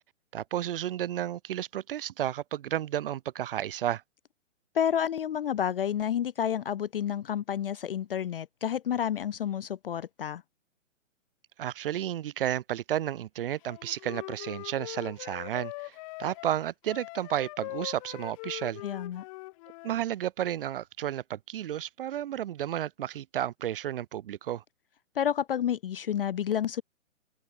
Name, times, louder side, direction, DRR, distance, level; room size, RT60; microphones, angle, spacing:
voice 1, 0.3-4.0 11.6-18.8 19.8-24.6, right 11 dB, 45° right, 1.3 m, -32 dB
voice 2, 4.7-10.4 18.8-19.2 25.2-26.8, left 9 dB, 45° left, 0.5 m, -30 dB
Wind instrument woodwind instrument, 13.6-20.0, left 25 dB, 25° left, 1.5 m, -42 dB
hypercardioid pair, 140°, 39 cm